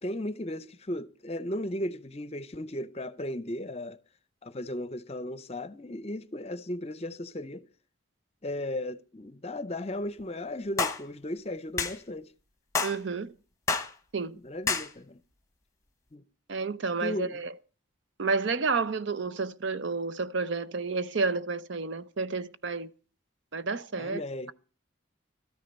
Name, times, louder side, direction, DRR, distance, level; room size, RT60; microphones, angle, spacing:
voice 1, 0.0-4.0 4.4-7.7 8.4-12.3 14.4-15.2 16.1-16.2 17.0-17.4 24.0-24.5, left 1 dB, 30° left, 0.6 m, -36 dB
sound 1, 10.8-11.0 11.8-12.0 12.7-13.0 13.7-13.9 14.7-14.9, left 4 dB, 15° left, 0.9 m, -28 dB
voice 2, 12.8-13.3 14.1-14.4 16.5-17.5 18.2-22.9 23.5-24.2, right 4 dB, 70° right, 0.7 m, -30 dB
13.5 x 9.9 x 5.3 m
head